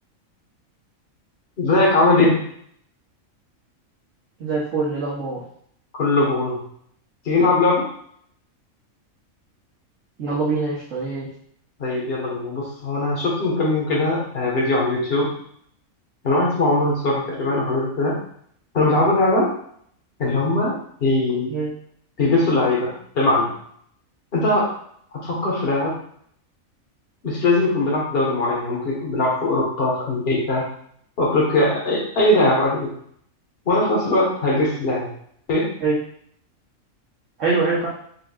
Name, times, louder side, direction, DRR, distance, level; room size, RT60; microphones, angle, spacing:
voice 1, 1.6-2.4 6.0-6.6 7.2-7.9 11.8-15.3 16.2-18.1 18.7-19.5 20.2-21.5 22.2-23.5 24.3-24.7 25.2-25.9 27.2-30.6 31.2-32.9 33.7-35.1 35.5-35.7, left 2 dB, 45° left, -4 dB, 1.5 m, -20 dB
voice 2, 4.4-5.4 10.2-11.3 21.5-21.7 35.8-36.0 37.4-37.9, right 3 dB, 65° right, -8 dB, 1.4 m, -23 dB
5.2 x 3.6 x 2.4 m, 0.64 s
omnidirectional pair, 1.4 m